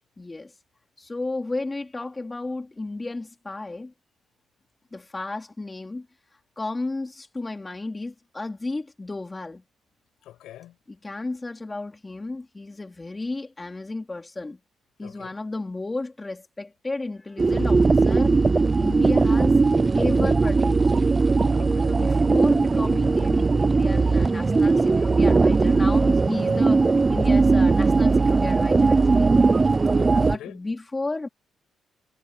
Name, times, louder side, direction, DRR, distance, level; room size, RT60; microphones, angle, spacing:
voice 1, 0.2-0.5 1.0-3.9 4.9-6.1 6.6-9.6 10.9-14.6 15.0-18.4 18.7-19.6 19.9-20.9 21.9-29.3 30.2-31.3, left 2 dB, 20° left, 3.1 m, -33 dB
voice 2, 10.2-10.7 15.0-15.3 21.6-22.0 29.8-30.6, left 13 dB, 85° left, 6.9 m, -44 dB
sound 1, 17.4-30.4, right 4 dB, 25° right, 0.4 m, -19 dB
cardioid pair, 90°, 0 cm